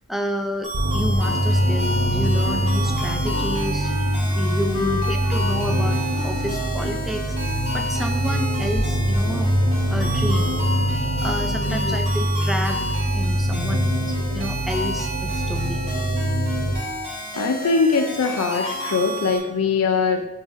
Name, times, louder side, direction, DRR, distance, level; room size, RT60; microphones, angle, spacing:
voice 1, 0.1-3.9 4.3-9.5 9.9-10.5 10.9-12.8 13.1-15.8, equal, ahead, 4 dB, 0.4 m, -30 dB
sound 1, 0.6-19.4, right 1 dB, 30° right, 2.0 m, -31 dB
sound 2, 0.7-16.8, equal, 65° right, 0.8 m, -23 dB
Wind instrument woodwind instrument, 2.4-8.7, left 3 dB, 40° left, 0.9 m, -36 dB
voice 2, 4.6-5.1 11.7-12.0 17.3-20.3, left 5 dB, 80° left, 5 dB, 0.4 m, -22 dB
9.5 x 3.9 x 2.6 m, 1.1 s
head